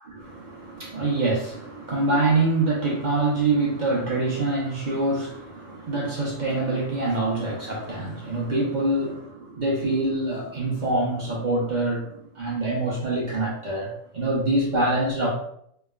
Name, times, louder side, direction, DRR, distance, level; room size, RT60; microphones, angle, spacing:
voice 1, 0.1-15.3, right 2 dB, 45° right, -4 dB, 0.7 m, -25 dB
3.1 x 2.8 x 2.3 m, 0.69 s
omnidirectional pair, 1.4 m